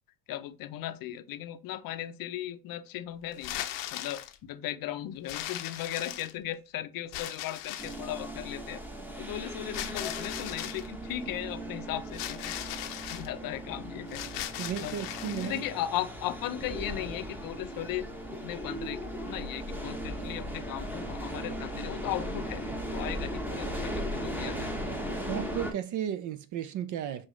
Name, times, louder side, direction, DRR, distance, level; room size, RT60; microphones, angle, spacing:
voice 1, 0.3-3.5 3.9-8.8 9.2-12.5 13.1-14.2 14.8-18.1 18.4-19.0 19.3-22.6 22.9-24.7, left 12 dB, 50° left, 0.6 m, -37 dB
sound 1, 3.3-4.4 5.3-6.5 7.1-8.1 9.7-10.9 12.1-13.3 14.1-15.6, left 13 dB, 80° left, 0.8 m, -38 dB
sound 2, 7.8-25.7, equal, 5° right, 0.8 m, -37 dB
voice 2, 14.6-15.7 25.2-27.3, right 10 dB, 45° right, 0.4 m, -34 dB
5.4 x 2.5 x 3.0 m
supercardioid pair, 100°, 46 cm